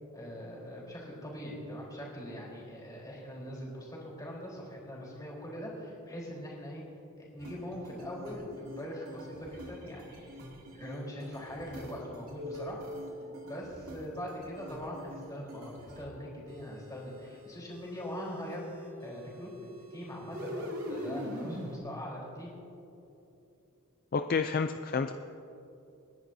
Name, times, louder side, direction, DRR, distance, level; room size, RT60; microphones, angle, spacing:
voice 1, 0.1-6.8 7.2-10.4 10.7-12.8 13.4-22.5, equal, 15° left, -4 dB, 3.8 m, -42 dB
sound 1, 7.4-16.1 16.5-21.8, equal, 75° right, 2.5 m, -44 dB
voice 2, 24.1-25.1, left 5 dB, 45° left, 8 dB, 0.4 m, -29 dB
29.0 x 11.0 x 2.7 m, 2.8 s
head